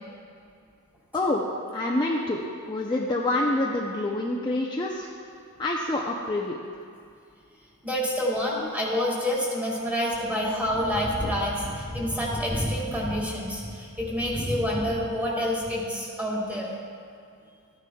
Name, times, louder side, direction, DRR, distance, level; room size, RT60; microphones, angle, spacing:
voice 1, 1.7-2.4 2.7-5.1 5.6-6.6, left 2 dB, 20° left, -2 dB, 0.5 m, -26 dB
voice 2, 7.8-16.7, equal, 5° right, -4 dB, 1.9 m, -27 dB
13.5 x 9.7 x 2.3 m, 2.4 s
head